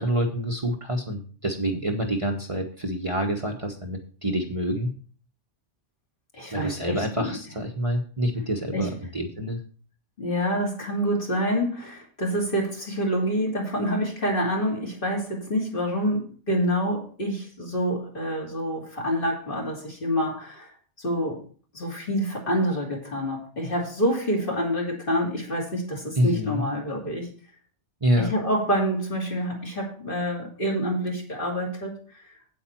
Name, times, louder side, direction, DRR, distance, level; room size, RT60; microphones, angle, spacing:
voice 1, 0.0-4.9 6.5-9.6 26.2-26.6 28.0-28.3, equal, 30° right, 1 dB, 1.2 m, -27 dB
voice 2, 6.3-7.4 8.7-8.9 10.2-20.7 21.0-21.4 21.7-27.3 28.2-32.0, equal, 45° left, -1 dB, 2.8 m, -27 dB
8.5 x 8.5 x 4.5 m, 0.41 s
omnidirectional pair, 1.3 m